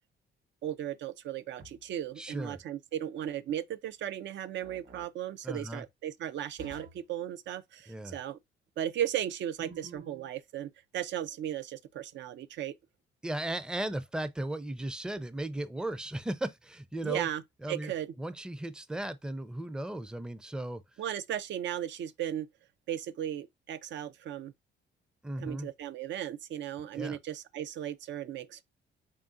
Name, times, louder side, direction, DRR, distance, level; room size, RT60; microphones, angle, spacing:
voice 1, 0.6-8.4 8.8-12.7 17.0-17.4 17.7-18.1 21.0-22.5 22.9-24.5 25.4-28.6, right 11 dB, 65° right, 0.5 m, -36 dB
sound 1, 1.6-2.1 4.6-5.1 6.6-7.1 9.6-10.3, right 3 dB, 45° right, 1.6 m, -50 dB
voice 2, 2.2-2.6 5.4-5.9 7.9-8.2 13.2-17.3 17.6-17.9 18.2-20.8 25.2-25.7 26.9-27.2, right 1 dB, 5° right, 0.4 m, -36 dB
3.7 x 3.6 x 2.5 m
cardioid pair, 90°, 20 cm